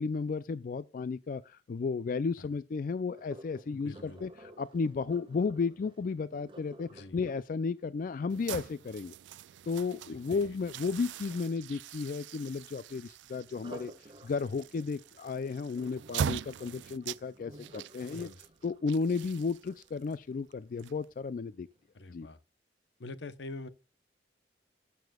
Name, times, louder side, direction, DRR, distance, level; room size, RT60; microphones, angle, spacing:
voice 1, 0.0-9.1 9.6-18.3 18.6-21.7 22.1-22.3, left 4 dB, 50° left, 0.3 m, -33 dB
Sink (filling or washing), 3.2-9.1 13.5-20.5 21.0-21.4 21.9-22.0, equal, 30° right, 1.3 m, -53 dB
voice 2, 3.7-4.2 6.9-7.2 10.3-10.4 18.1-18.4 21.9-22.4 23.0-23.7, left 2 dB, 75° left, 0.8 m, -44 dB
sound 1, 8.3-21.4, right 8 dB, 85° right, 0.3 m, -42 dB
15.5 x 6.9 x 2.3 m
head